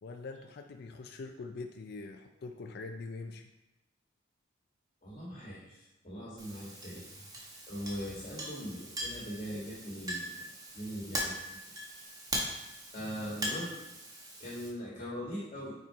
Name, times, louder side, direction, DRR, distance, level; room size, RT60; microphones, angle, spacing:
voice 1, 0.0-3.5, left 3 dB, 55° left, 5 dB, 0.4 m, -43 dB
voice 2, 5.0-10.4 10.7-11.6 12.9-13.7 14.4-15.7, equal, 35° left, -6 dB, 1.4 m, -41 dB
Chink clink, 6.4-14.7, equal, 20° right, 1.1 m, -40 dB
5.9 x 4.4 x 4.6 m, 1.0 s
head